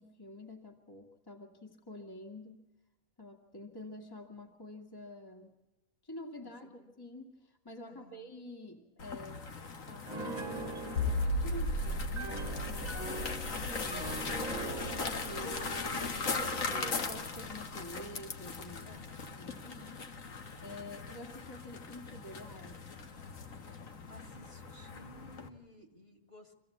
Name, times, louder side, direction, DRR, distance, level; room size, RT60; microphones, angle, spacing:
voice 1, 0.0-2.6 3.2-5.6 6.0-9.6 9.9-18.9 19.4-20.1 20.6-22.9, left 1 dB, 15° left, 2 dB, 1.9 m, -48 dB
voice 2, 6.4-6.9 7.8-8.3 18.8-19.4 24.1-26.5, left 1 dB, 45° left, 4 dB, 3.1 m, -56 dB
sound 1, 9.0-25.5, left 4 dB, 65° left, 1.9 m, -40 dB
Piano, 10.1-17.0, right 2 dB, 30° right, 1.6 m, -42 dB
sound 2, 11.0-18.2, left 1 dB, 85° left, 2.1 m, -37 dB
25.0 x 16.0 x 8.4 m, 1.1 s
omnidirectional pair, 1.5 m